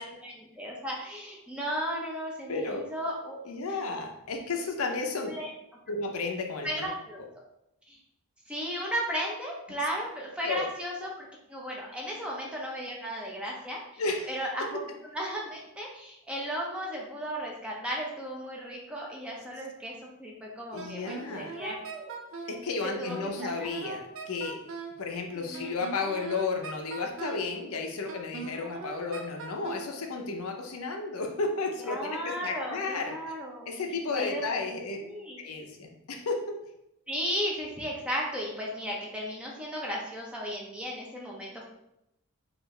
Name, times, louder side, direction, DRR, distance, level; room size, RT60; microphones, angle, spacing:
voice 1, 0.0-3.4 5.2-5.5 6.6-7.2 7.9-8.0 8.5-14.0 14.3-14.8 15.1-22.1 23.0-23.3 23.6-23.7 25.3-25.8 31.8-33.6 34.2-34.4 35.0-35.5 37.1-41.6, equal, 5° right, -3 dB, 0.6 m, -35 dB
voice 2, 2.5-2.8 3.4-5.3 5.9-6.9 10.5-10.6 14.0-14.4 20.7-21.5 22.5-24.6 25.0-33.1 33.7-35.0 35.4-36.6, left 3 dB, 75° left, 3 dB, 0.6 m, -33 dB
Wind instrument woodwind instrument, 20.8-22.6 23.1-25.0 25.5-27.5 28.1-29.9, right 4 dB, 60° right, 0.5 m, -40 dB
4.3 x 2.5 x 3.2 m, 0.84 s
head